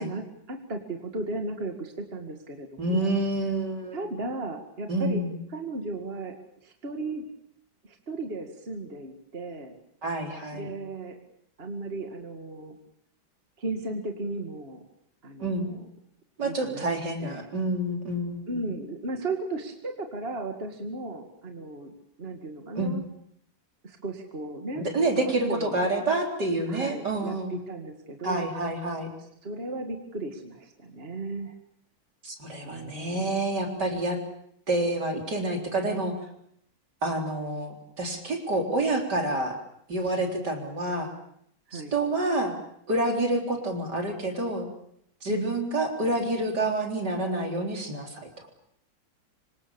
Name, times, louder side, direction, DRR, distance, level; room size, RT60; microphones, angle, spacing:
voice 1, 0.0-3.1 3.9-5.2 5.5-6.3 6.6-7.3 7.8-9.8 10.5-11.2 11.6-12.8 13.6-14.8 15.2-15.9 16.4-16.8 17.2-17.5 18.5-23.0 23.8-24.9 25.2-25.8 26.7-28.5 29.4-31.5 32.6-33.4 41.7-41.9 45.3-45.6, right 2 dB, 30° right, 4 dB, 2.4 m, -35 dB
voice 2, 2.8-4.0 4.9-5.3 10.0-10.7 15.4-15.7 16.4-18.6 22.8-22.9 24.8-27.6 28.2-29.1 32.2-34.2 34.7-36.1 37.0-39.6 39.9-41.1 41.7-42.6 42.9-44.7 45.2-48.3, right 2 dB, 55° right, 2 dB, 4.5 m, -28 dB
26.0 x 25.5 x 7.2 m, 0.70 s
omnidirectional pair, 2.1 m